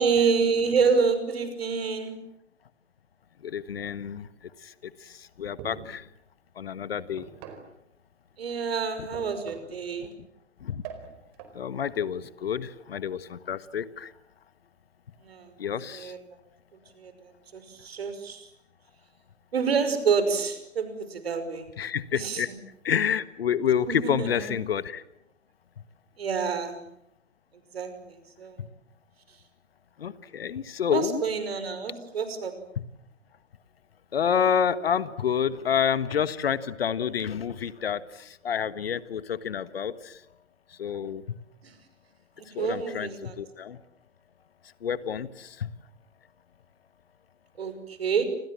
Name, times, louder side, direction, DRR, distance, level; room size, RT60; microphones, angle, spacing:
voice 1, 0.0-2.2 8.4-10.1 15.2-15.5 15.9-16.2 16.9-18.5 19.5-21.7 22.1-22.4 23.9-24.6 26.2-26.8 27.7-28.6 30.9-32.5 41.6-41.7 42.4-43.4 47.6-48.2, right 5 dB, 55° right, 10 dB, 5.8 m, -28 dB
voice 2, 3.4-4.3 4.6-6.1 6.6-7.2 10.6-10.8 11.5-14.1 15.6-16.1 21.8-22.5 22.8-25.0 28.6-28.7 30.0-31.2 34.1-40.2 40.8-41.2 42.5-43.8 44.8-45.7, left 8 dB, 55° left, 15 dB, 1.6 m, -29 dB
sound 1, 5.6-6.0 7.2-7.8 9.1-9.8 10.8-11.6, right 7 dB, 30° right, 4.6 m, -43 dB
28.5 x 28.0 x 7.5 m, 0.76 s
figure-of-eight pair, 125°, 36 cm